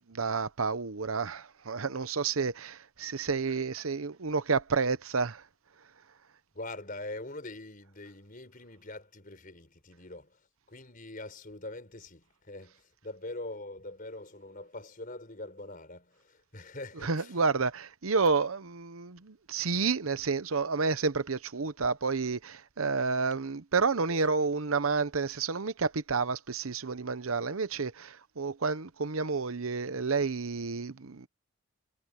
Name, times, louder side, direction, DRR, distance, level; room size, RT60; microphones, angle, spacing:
voice 1, 0.1-5.4 17.0-31.3, right 4 dB, 80° right, 0.9 m, -30 dB
voice 2, 6.5-10.4 10.7-17.4 24.1-24.3, left 2 dB, 40° left, 5.1 m, -43 dB
head